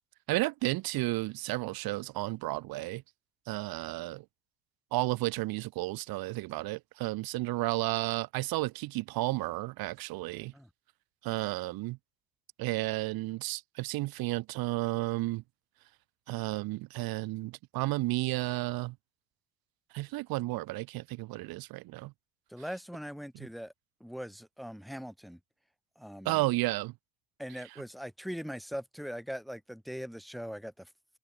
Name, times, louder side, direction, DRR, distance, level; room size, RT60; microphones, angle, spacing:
voice 1, 0.3-3.0 3.5-4.2 4.9-10.5 11.2-12.0 12.6-15.4 16.3-18.9 19.9-22.1 26.3-26.9, right 20 dB, 65° right, 4.0 m, -32 dB
voice 2, 22.5-23.7 24.0-25.4 26.0-26.4 27.4-30.9, equal, ahead, 5.4 m, -41 dB
supercardioid pair, 90°, 39 cm